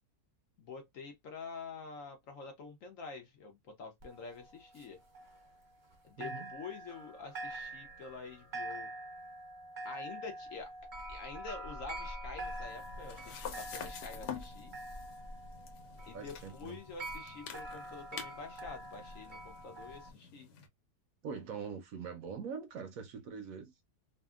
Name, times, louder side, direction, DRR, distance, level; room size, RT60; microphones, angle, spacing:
voice 1, 0.6-5.0 6.0-8.9 9.8-10.7 11.1-14.7 16.1-20.5, left 5 dB, 65° left, 0.9 m, -47 dB
sound 1, 4.0-5.9 6.2-20.1, right 1 dB, 40° right, 0.7 m, -45 dB
voice 2, 6.2-6.5 16.1-16.8 21.2-23.7, right 6 dB, 70° right, 0.9 m, -43 dB
sound 2, 12.4-20.7, left 7 dB, 85° left, 1.3 m, -48 dB
2.7 x 2.5 x 2.3 m
omnidirectional pair, 1.8 m